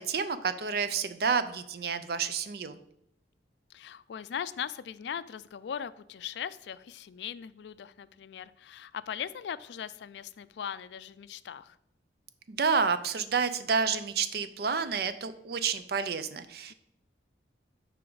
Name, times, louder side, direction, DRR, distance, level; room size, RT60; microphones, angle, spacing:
voice 1, 0.0-2.8 12.5-16.7, right 5 dB, 55° right, 12 dB, 0.5 m, -29 dB
voice 2, 3.7-11.8, left 8 dB, 70° left, 16 dB, 0.3 m, -39 dB
7.6 x 4.9 x 3.9 m, 0.80 s
head